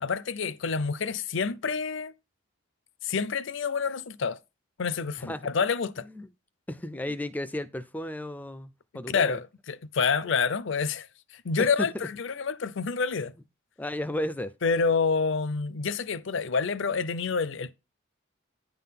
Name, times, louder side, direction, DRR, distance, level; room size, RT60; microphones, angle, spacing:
voice 1, 0.0-2.1 3.0-4.4 4.8-6.1 9.1-11.1 11.3-13.3 14.6-17.7, left 5 dB, 65° left, 0.6 m, -28 dB
voice 2, 6.7-9.4 11.6-11.9 13.8-14.5, left 1 dB, 10° left, 0.4 m, -33 dB
9.8 x 3.8 x 5.8 m
head